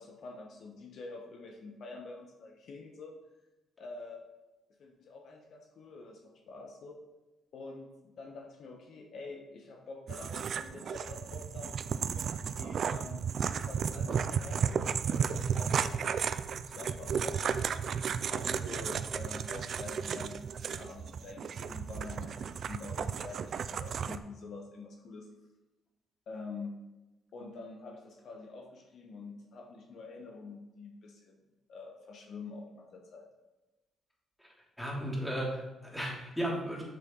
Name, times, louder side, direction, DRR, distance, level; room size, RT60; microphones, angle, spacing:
voice 1, 0.0-3.1 3.8-4.2 4.8-6.9 7.5-13.3 13.6-17.7 18.3-25.3 26.3-26.8 27.3-31.4 31.7-33.3, left 3 dB, 65° left, 2 dB, 1.2 m, -47 dB
sound 1, 10.1-24.2, right 7 dB, 60° right, 0.4 m, -34 dB
voice 2, 34.8-36.8, equal, 5° left, -4 dB, 2.9 m, -35 dB
8.5 x 7.0 x 4.0 m, 1.1 s
cardioid pair, 90°, 0 cm